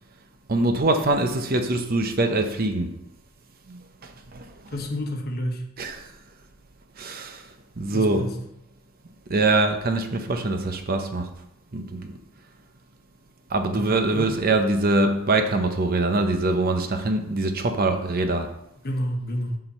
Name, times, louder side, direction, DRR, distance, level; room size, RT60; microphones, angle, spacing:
voice 1, 0.5-3.0 3.7-3.8 4.3-4.5 5.8-6.1 7.0-7.4 7.8-8.3 9.3-11.3 11.7-12.1 13.5-18.5, right 2 dB, 40° right, 6 dB, 0.7 m, -23 dB
voice 2, 4.7-5.7 7.9-8.4 13.7-14.3 18.8-19.6, equal, 45° left, 2 dB, 1.2 m, -29 dB
7.5 x 4.4 x 6.8 m, 0.80 s
head